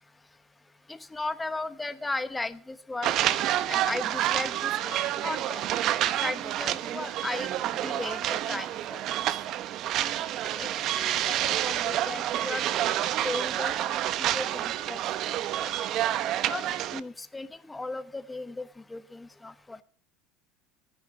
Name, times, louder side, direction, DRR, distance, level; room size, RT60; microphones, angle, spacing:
voice 1, 0.9-3.1 3.7-5.6 6.2-7.5 7.8-8.2 8.5-9.0 10.4-12.6 13.2-13.7 14.2-15.0 16.4-16.6 16.9-19.8, left 2 dB, 10° left, 13 dB, 1.1 m, -36 dB
sound 1, 3.0-17.0, right 12 dB, 50° right, 0.9 m, -28 dB
15.5 x 10.0 x 6.7 m, 0.43 s
supercardioid pair, 120°, 0 cm